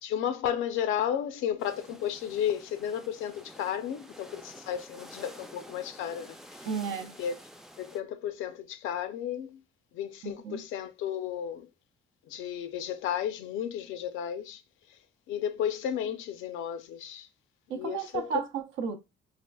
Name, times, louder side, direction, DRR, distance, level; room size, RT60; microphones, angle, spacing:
voice 1, 0.0-6.7 7.2-7.3 7.8-9.6 9.9-11.7 12.3-14.6 14.9-15.0 15.3-17.3 17.7-18.3, left 9 dB, 90° left, 0.5 m, -33 dB
sound 1, 1.6-8.0, equal, ahead, 0.3 m, -50 dB
voice 2, 6.6-7.2 10.2-10.6 17.7-19.0, right 7 dB, 85° right, 0.7 m, -33 dB
4.2 x 2.5 x 2.2 m
cardioid pair, 90°, 20 cm